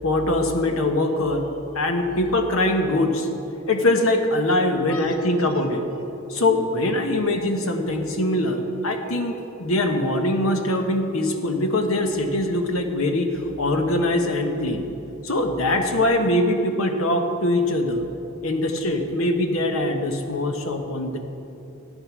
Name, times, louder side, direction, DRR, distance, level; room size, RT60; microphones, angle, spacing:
voice 1, 0.0-1.4 1.7-3.3 3.7-5.8 6.3-14.8 15.2-18.1 18.4-21.2, left 1 dB, 90° left, 5 dB, 1.2 m, -22 dB
11.5 x 8.8 x 6.1 m, 2.9 s
head